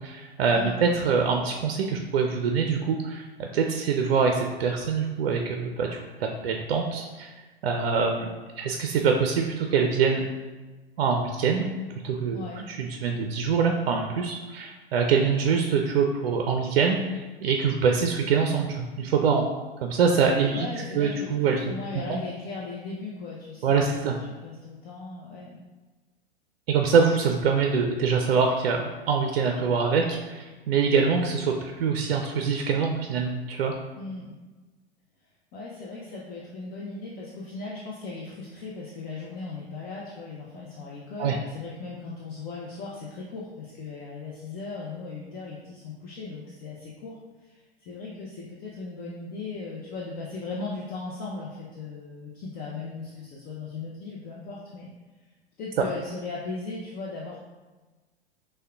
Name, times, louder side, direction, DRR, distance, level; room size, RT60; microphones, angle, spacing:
voice 1, 0.0-5.9 6.2-7.3 7.6-8.3 8.6-10.2 11.0-11.7 12.0-19.5 19.8-20.7 20.9-21.7 22.1-22.2 23.6-24.2 26.7-33.7 41.2-41.4, right 5 dB, 65° right, 3 dB, 0.5 m, -24 dB
voice 2, 0.5-0.9 12.3-12.7 20.5-24.1 24.4-25.6 34.0-34.4 35.5-54.9 55.6-57.4, left 3 dB, 30° left, -4 dB, 0.5 m, -38 dB
6.3 x 2.2 x 2.3 m, 1.2 s
figure-of-eight pair, 95°, 30 cm